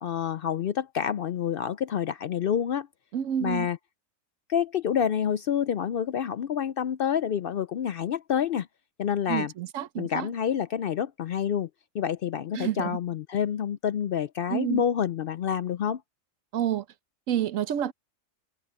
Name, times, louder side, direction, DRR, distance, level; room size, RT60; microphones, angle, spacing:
voice 1, 0.0-2.9 3.4-3.8 4.5-8.7 9.0-9.5 10.0-11.7 11.9-16.0, left 8 dB, 65° left, 0.6 m, -28 dB
voice 2, 3.1-3.7 9.3-10.3 12.5-13.0 14.5-14.8 16.5-16.8 17.3-17.9, right 10 dB, 75° right, 1.1 m, -29 dB
omnidirectional pair, 1.4 m